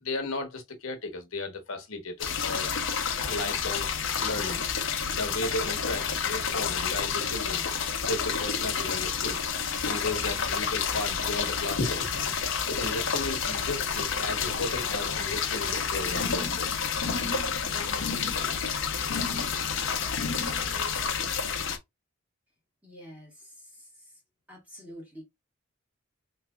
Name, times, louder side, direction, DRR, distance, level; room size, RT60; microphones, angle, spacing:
voice 1, 0.0-2.7 3.2-3.9 4.2-4.6 5.1-7.6 8.0-9.5 9.8-12.3 12.6-16.9, left 2 dB, 85° left, 1.0 m, -34 dB
sound 1, 2.2-21.8, left 6 dB, 65° left, 0.6 m, -29 dB
voice 2, 22.8-24.2 24.5-25.2, equal, 5° right, 1.7 m, -47 dB
3.3 x 3.2 x 2.3 m
head